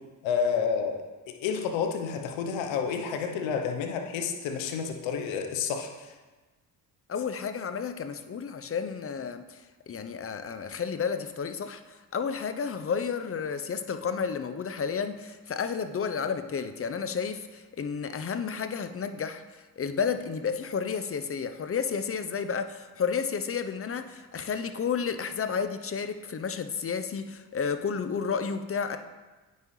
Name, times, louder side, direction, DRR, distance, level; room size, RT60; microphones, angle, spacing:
voice 1, 0.2-6.1, left 6 dB, 80° left, 5 dB, 0.9 m, -30 dB
voice 2, 7.1-29.0, left 6 dB, 30° left, 9 dB, 0.6 m, -31 dB
9.4 x 5.5 x 3.2 m, 1.2 s
hypercardioid pair, 50°, 45 cm